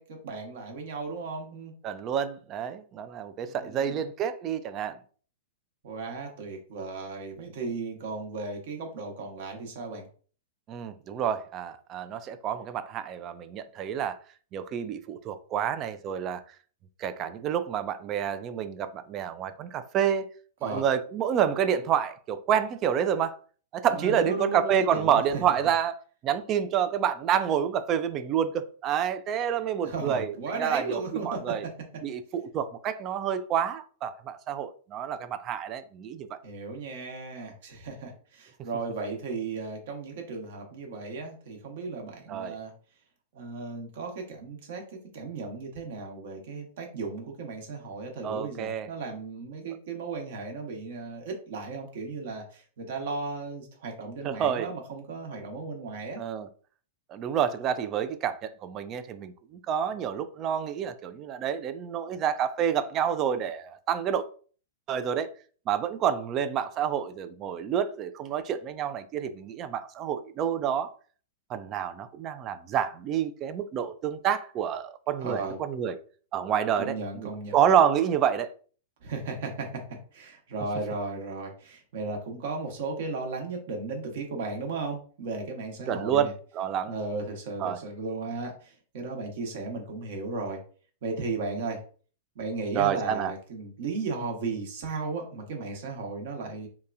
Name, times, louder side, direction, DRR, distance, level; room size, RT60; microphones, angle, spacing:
voice 1, 0.0-1.7 3.5-4.0 5.8-10.1 20.6-20.8 23.9-25.4 29.8-31.6 36.4-42.7 43.3-56.2 75.2-75.6 76.7-77.6 79.0-79.8 80.1-86.3 86.9-90.6 91.0-91.8 92.3-96.7, right 3 dB, 65° right, 0.9 m, -35 dB
voice 2, 1.8-5.0 10.7-14.2 14.5-16.4 17.0-20.3 20.6-23.3 23.7-26.0 26.2-31.6 32.0-36.4 42.3-42.6 48.2-48.9 54.2-54.7 56.2-56.5 57.1-64.3 64.9-65.3 65.7-70.9 71.5-76.0 76.3-78.5 85.9-86.9 87.6-87.8 92.7-93.3, right 8 dB, 35° right, 0.3 m, -28 dB
2.8 x 2.2 x 2.4 m
hypercardioid pair, 110°, 0 cm